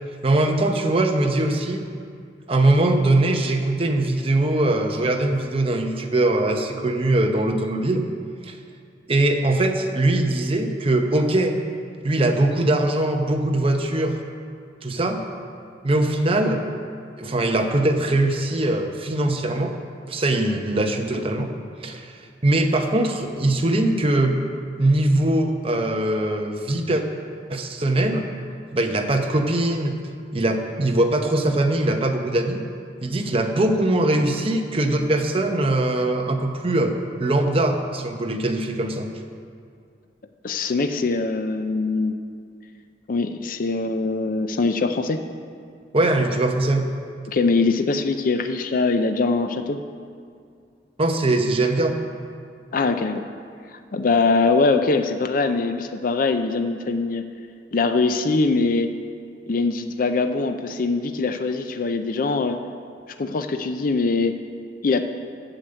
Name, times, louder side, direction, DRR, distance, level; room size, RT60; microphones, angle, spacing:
voice 1, 0.2-1.8 2.5-8.1 8.4-8.6 9.1-11.6 12.0-14.2 14.8-15.2 15.8-16.6 17.2-19.7 20.1-21.5 21.8-24.4 24.8-27.0 27.5-28.3 28.7-29.9 30.3-32.6 33.0-36.9 37.2-39.1 45.9-46.8 51.0-52.0, right 1 dB, 35° right, 4 dB, 0.8 m, -21 dB
voice 2, 40.4-42.1 43.1-45.2 47.3-49.8 52.7-53.2 53.9-57.3 57.7-58.9 59.5-62.6 63.2-64.4 64.8-65.1, left 3 dB, 50° left, 7 dB, 0.5 m, -22 dB
8.9 x 6.6 x 7.9 m, 2.3 s
head